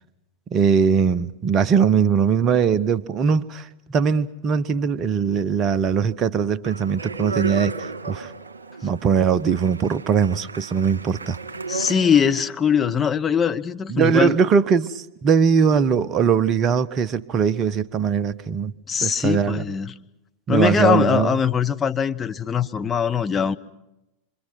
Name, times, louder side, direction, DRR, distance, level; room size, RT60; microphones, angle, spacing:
voice 1, 0.5-8.3 8.8-11.4 13.9-18.7 19.0-19.6 20.5-21.3, right 6 dB, 30° right, 0.9 m, -21 dB
Speech, 6.6-12.5, right 4 dB, 75° right, 1.7 m, -34 dB
voice 2, 11.7-14.4 18.9-20.0 20.5-23.6, left 7 dB, 20° left, 1.0 m, -21 dB
26.5 x 25.0 x 6.0 m
figure-of-eight pair, 90°, 0 cm